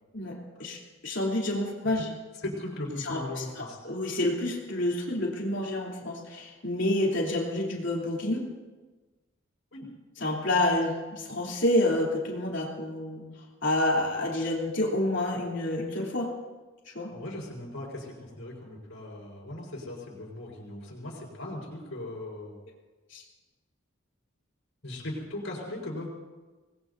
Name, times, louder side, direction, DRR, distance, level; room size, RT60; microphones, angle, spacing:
voice 1, 0.1-2.1 3.0-8.4 10.2-13.2 13.6-16.3 16.9-17.1 23.1-23.2, left 1 dB, 65° left, -2 dB, 3.3 m, -28 dB
voice 2, 2.4-3.8 9.7-9.9 17.1-22.6 24.8-26.1, left 1 dB, 80° left, -3 dB, 4.7 m, -38 dB
27.0 x 20.0 x 2.7 m, 1.2 s
head